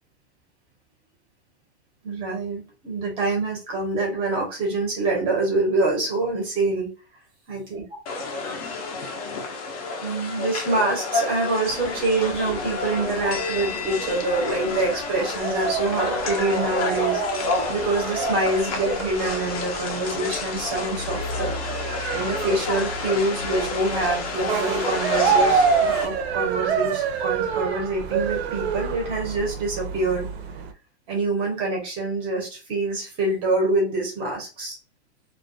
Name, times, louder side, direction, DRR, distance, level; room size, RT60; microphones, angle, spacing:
voice 1, 2.0-6.9 7.5-7.8 10.0-21.6 22.1-30.3 31.1-34.8, right 2 dB, 15° right, -1 dB, 0.6 m, -26 dB
sound 1, 8.1-26.1, left 3 dB, 35° left, 0.4 m, -29 dB
sound 2, 11.6-30.7, right 6 dB, 65° right, 0.5 m, -28 dB
2.2 x 2.2 x 2.5 m, 0.32 s
supercardioid pair, 165°, 34 cm